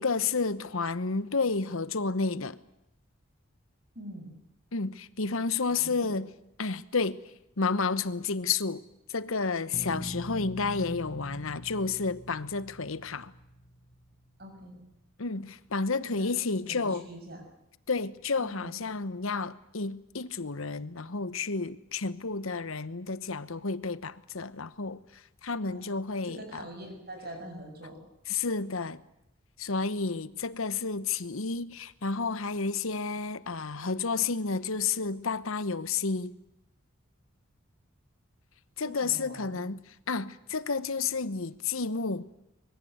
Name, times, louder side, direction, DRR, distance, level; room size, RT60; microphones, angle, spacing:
voice 1, 0.0-2.6 4.7-6.3 6.6-7.2 7.6-8.8 9.1-13.3 15.2-17.0 17.9-25.0 25.4-26.6 28.3-29.0 29.6-36.3 38.8-39.8 40.1-42.2, left 4 dB, 75° left, 1.1 m, -31 dB
voice 2, 4.0-4.3 5.7-6.2 14.4-14.8 16.0-16.3 16.7-17.4 18.4-18.7 25.7-25.8 26.2-28.0 38.8-39.6, right 1 dB, 45° right, 7.0 m, -44 dB
sound 1, 9.7-14.6, equal, 25° left, 1.3 m, -43 dB
25.0 x 22.0 x 8.0 m
head